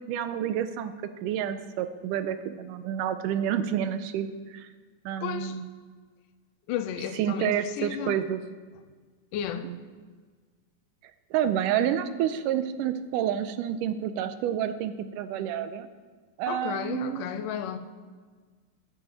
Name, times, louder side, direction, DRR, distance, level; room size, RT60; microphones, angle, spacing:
voice 1, 0.1-0.9 1.2-4.7 5.1-5.7 7.2-8.4 9.6-9.8 11.3-15.9 16.4-17.3, right 10 dB, 85° right, 2.2 m, -29 dB
voice 2, 5.2-5.6 6.7-8.2 9.3-9.7 16.5-17.8, left 9 dB, 90° left, 2.3 m, -33 dB
10.0 x 8.7 x 6.8 m
omnidirectional pair, 3.7 m